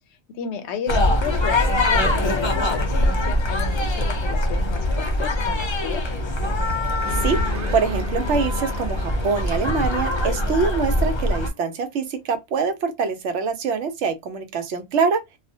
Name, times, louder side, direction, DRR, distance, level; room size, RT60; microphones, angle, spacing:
voice 1, 0.4-6.0, left 7 dB, 75° left, 0.8 m, -33 dB
sound 1, 0.9-11.5, left 1 dB, 40° left, 0.4 m, -23 dB
sound 2, 7.0-12.0, left 2 dB, 20° right, 0.5 m, -38 dB
voice 2, 7.7-15.2, right 5 dB, 85° right, 0.9 m, -24 dB
2.3 x 2.0 x 2.6 m
omnidirectional pair, 1.2 m